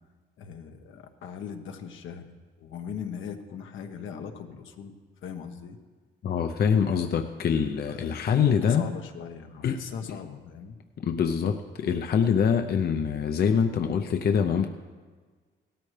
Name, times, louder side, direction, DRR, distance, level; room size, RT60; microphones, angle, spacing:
voice 1, 0.4-2.3 2.6-4.9 5.2-5.8 7.9-10.8, left 7 dB, 80° left, 5 dB, 1.2 m, -39 dB
voice 2, 6.2-8.8 9.6-9.9 11.0-14.7, left 7 dB, 50° left, 6 dB, 0.7 m, -24 dB
17.0 x 13.5 x 3.3 m, 1.5 s
cardioid pair, 90°, 20 cm